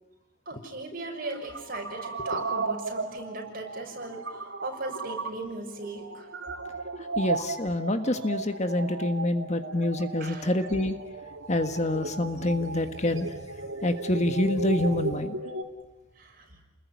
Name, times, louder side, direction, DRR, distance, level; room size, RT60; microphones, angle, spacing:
voice 1, 0.5-6.3 10.2-10.5 16.2-16.5, right 2 dB, 45° right, 2 dB, 6.3 m, -37 dB
sound 1, 1.1-15.6, right 3 dB, 75° right, 3.3 m, -36 dB
voice 2, 7.2-11.0 11.5-13.3 13.8-15.4, left 1 dB, 35° left, 9 dB, 1.5 m, -27 dB
30.0 x 21.0 x 9.5 m, 1.1 s
head